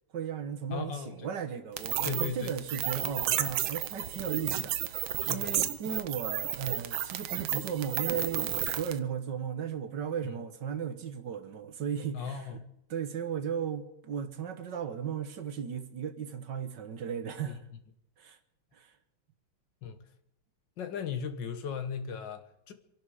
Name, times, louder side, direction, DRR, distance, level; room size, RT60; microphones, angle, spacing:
voice 1, 0.1-12.5 12.9-17.6 18.2-18.4 18.7-18.9, right 8 dB, 60° right, 1.6 m, -36 dB
voice 2, 0.7-1.3 2.0-2.5 5.2-5.7 12.1-12.7 17.5-17.6 19.8-20.0 20.8-22.7, left 6 dB, 60° left, 1.8 m, -37 dB
sound 1, 1.8-9.0, right 11 dB, 75° right, 1.7 m, -32 dB
25.5 x 11.5 x 4.9 m
omnidirectional pair, 2.3 m